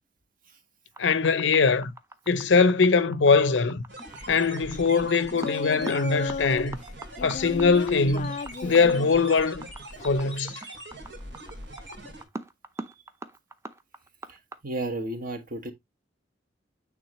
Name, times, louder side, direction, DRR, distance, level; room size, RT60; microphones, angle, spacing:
sound 1, 0.9-14.6, right 2 dB, 15° right, 0.6 m, -41 dB
voice 1, 1.0-1.9 2.3-3.8 4.3-6.8 7.2-9.7 10.0-10.6, left 4 dB, 80° left, 0.6 m, -22 dB
sound 2, 3.9-12.2, right 1 dB, 80° right, 2.7 m, -42 dB
Singing, 5.3-6.7 7.2-9.2 10.0-10.5, left 5 dB, 40° left, 0.3 m, -34 dB
voice 2, 14.3-15.7, right 2 dB, 50° right, 1.3 m, -34 dB
8.9 x 3.8 x 3.0 m
head